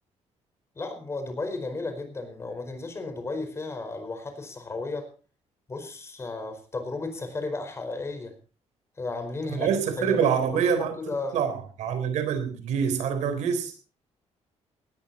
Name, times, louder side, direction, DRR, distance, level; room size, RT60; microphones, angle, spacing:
voice 1, 0.7-5.1 5.7-8.3 9.0-9.7 10.0-11.4, left 3 dB, 25° left, 4.7 m, -34 dB
voice 2, 9.5-11.0 11.3-13.7, right 7 dB, 85° right, 3.9 m, -26 dB
19.0 x 13.5 x 4.3 m
cardioid pair, 145°, 12 cm